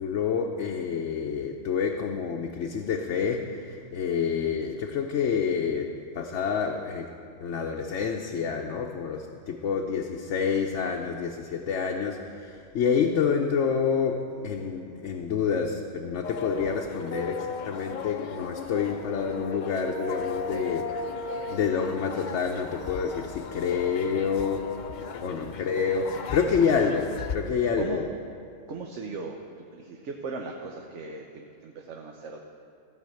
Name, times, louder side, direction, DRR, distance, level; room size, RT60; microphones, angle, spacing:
voice 1, 0.0-7.1 7.4-20.9 21.3-24.7 25.2-28.1, left 6 dB, 85° left, 1 dB, 1.0 m, -28 dB
sound 1, 16.2-27.3, left 5 dB, 50° left, 0.6 m, -36 dB
voice 2, 25.2-25.5 27.8-28.0 28.7-29.4 29.7-32.4, right 4 dB, 80° right, 2 dB, 1.1 m, -38 dB
15.0 x 5.5 x 7.7 m, 2.4 s
omnidirectional pair, 1.2 m